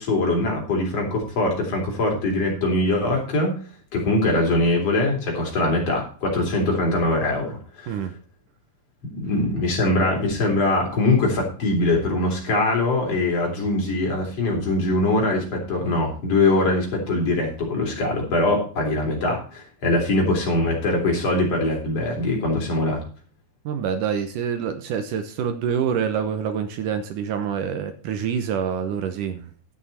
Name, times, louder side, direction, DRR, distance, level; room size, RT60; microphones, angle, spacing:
voice 1, 0.0-3.5 3.9-7.9 9.1-23.0, left 2 dB, 45° left, 0 dB, 4.6 m, -22 dB
voice 2, 7.9-8.2 23.7-29.5, right 7 dB, 70° right, 8 dB, 2.3 m, -26 dB
11.0 x 9.2 x 4.3 m, 0.40 s
omnidirectional pair, 4.2 m